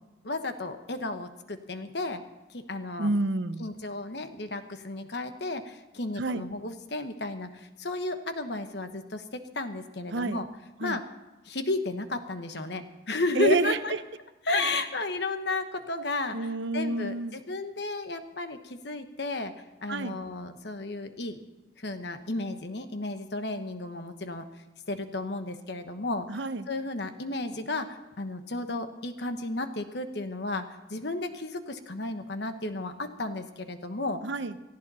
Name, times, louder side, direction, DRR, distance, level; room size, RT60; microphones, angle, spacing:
voice 1, 0.2-2.2 2.5-3.1 3.6-10.5 10.8-11.0 11.4-13.9 14.4-16.5 16.7-19.5 19.8-21.4 21.8-24.5 24.9-26.3 26.7-34.2, left 2 dB, 65° left, 8 dB, 1.2 m, -33 dB
voice 2, 3.0-3.7 6.2-6.4 10.1-10.4 10.8-11.0 13.4-13.8 16.3-17.4 19.9-20.2 26.3-26.7 34.2-34.5, right 3 dB, 70° right, 12 dB, 0.7 m, -29 dB
18.0 x 14.5 x 4.2 m, 1.1 s
head